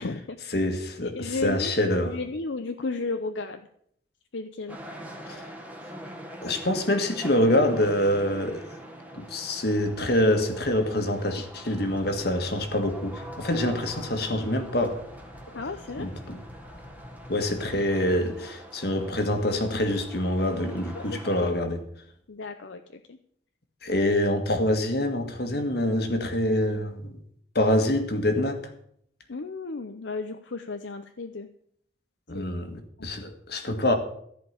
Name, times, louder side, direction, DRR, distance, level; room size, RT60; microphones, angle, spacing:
voice 1, 0.0-0.6 1.0-3.7 4.3-4.8 15.5-16.1 20.9-21.5 22.3-23.2 29.3-31.5 32.3-32.5 33.0-33.1, left 3 dB, 75° left, 0.7 m, -34 dB
voice 2, 0.5-2.2 5.3-5.4 6.4-8.6 9.1-15.0 16.0-16.4 17.3-21.8 23.8-27.2 27.5-28.6 32.3-34.0, left 1 dB, 55° left, 1.7 m, -25 dB
sound 1, 4.7-21.5, right 1 dB, 10° right, 1.6 m, -44 dB
sound 2, 11.9-18.2, equal, 40° left, 1.7 m, -47 dB
14.0 x 5.2 x 8.7 m
head